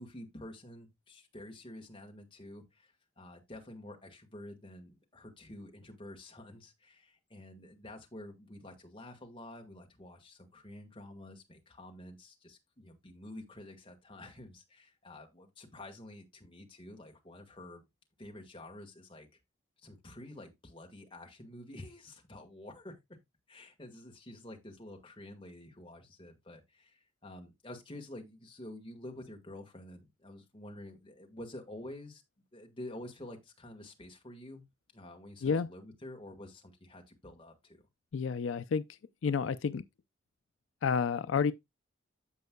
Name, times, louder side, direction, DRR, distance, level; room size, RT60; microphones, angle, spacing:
voice 1, 0.0-17.8 18.2-19.3 19.8-23.0 23.5-32.2 32.5-34.6 34.9-37.8, left 1 dB, 25° left, 1.7 m, -49 dB
voice 2, 38.1-39.8 40.8-41.5, left 6 dB, 80° left, 0.4 m, -30 dB
14.5 x 5.3 x 2.3 m
head